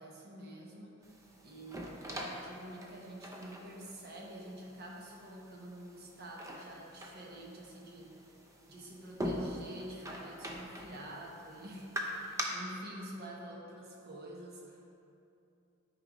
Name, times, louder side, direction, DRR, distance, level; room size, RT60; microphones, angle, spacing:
voice 1, 0.0-8.1 8.7-14.8, right 1 dB, 50° right, -2 dB, 1.1 m, -48 dB
sound 1, 1.0-12.4, equal, 15° right, 0.6 m, -44 dB
9.6 x 5.1 x 3.1 m, 2.7 s
head